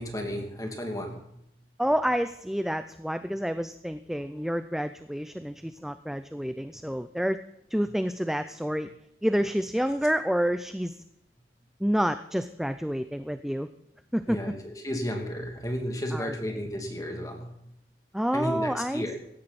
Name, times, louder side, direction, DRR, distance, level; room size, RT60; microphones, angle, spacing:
voice 1, 0.0-1.4 9.8-9.9 14.3-17.7 18.3-19.2, equal, 20° left, 2 dB, 2.5 m, -33 dB
voice 2, 1.8-7.4 7.7-8.9 9.2-11.0 11.8-13.7 14.1-14.4 16.1-16.3 18.1-19.0, equal, ahead, 10 dB, 0.4 m, -28 dB
16.5 x 13.0 x 4.2 m, 0.81 s
head